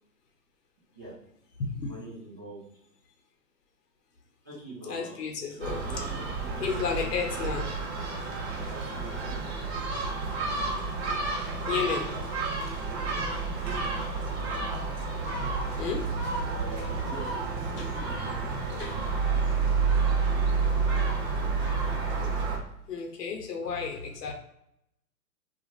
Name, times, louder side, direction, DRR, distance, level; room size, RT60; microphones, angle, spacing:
voice 1, 1.8-2.6 4.4-5.2 5.5-7.6 8.7-9.4 13.0-13.2 16.5-19.4 20.0-20.4 20.7-20.8 22.0-22.3, right 1 dB, 15° right, -12 dB, 0.4 m, -45 dB
voice 2, 4.9-5.8 6.6-7.6 11.7-12.2 15.8-16.1 17.8-17.9 18.8-18.9 22.9-24.3, left 6 dB, 70° left, 2 dB, 1.0 m, -32 dB
Gull seagull, 5.6-22.6, right 4 dB, 40° right, 0.9 m, -30 dB
2.5 x 2.4 x 3.2 m, 0.79 s
hypercardioid pair, 135°, 49 cm